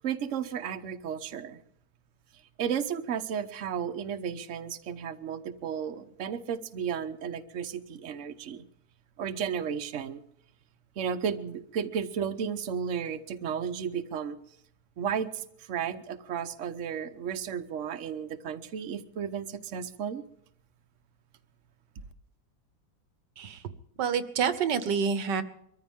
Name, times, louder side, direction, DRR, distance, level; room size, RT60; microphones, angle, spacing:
voice 1, 0.0-1.6 2.6-8.6 9.2-10.2 11.0-14.4 15.0-20.2, right 7 dB, 50° right, 9 dB, 1.1 m, -33 dB
voice 2, 24.0-25.4, right 6 dB, 75° right, 12 dB, 1.7 m, -27 dB
23.5 x 14.5 x 3.6 m, 0.71 s
omnidirectional pair, 1.9 m